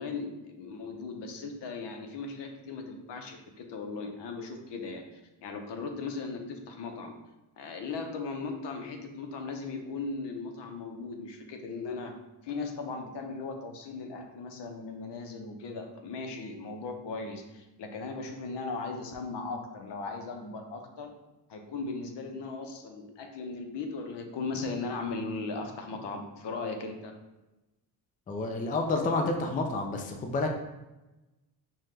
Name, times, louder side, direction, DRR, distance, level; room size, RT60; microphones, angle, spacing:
voice 1, 0.0-7.1 7.6-12.1 12.4-21.1 21.5-27.1, left 4 dB, 70° left, 4 dB, 0.7 m, -38 dB
voice 2, 28.3-30.6, left 2 dB, 20° left, 3 dB, 0.3 m, -29 dB
5.5 x 2.2 x 3.2 m, 1.0 s
cardioid pair, 130°, 43 cm